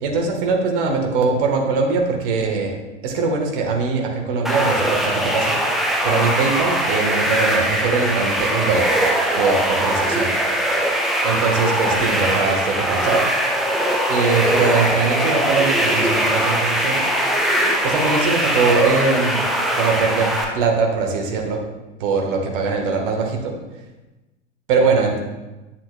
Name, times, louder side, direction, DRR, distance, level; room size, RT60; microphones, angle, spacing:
voice 1, 0.0-2.7 3.0-5.5 6.0-8.9 9.4-10.3 11.2-13.2 14.1-17.0 17.8-19.4 19.8-21.6 22.0-23.6 24.7-25.2, right 4 dB, 45° right, 2 dB, 1.4 m, -21 dB
sound 1, 4.4-20.4, right 1 dB, ahead, 0.4 m, -21 dB
8.9 x 7.5 x 2.2 m, 1.1 s
figure-of-eight pair, 95°, 36 cm